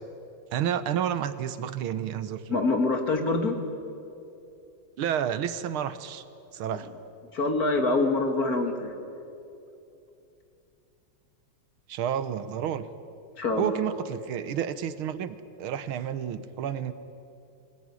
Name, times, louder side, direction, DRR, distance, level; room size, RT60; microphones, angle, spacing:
voice 1, 0.5-2.6 5.0-6.3 6.5-6.9 11.9-12.9 13.6-16.9, right 9 dB, 80° right, 13 dB, 1.8 m, -30 dB
voice 2, 2.5-3.6 7.3-8.9 13.4-13.8, left 2 dB, 45° left, 4 dB, 2.5 m, -25 dB
25.5 x 18.0 x 9.7 m, 2.7 s
omnidirectional pair, 2.3 m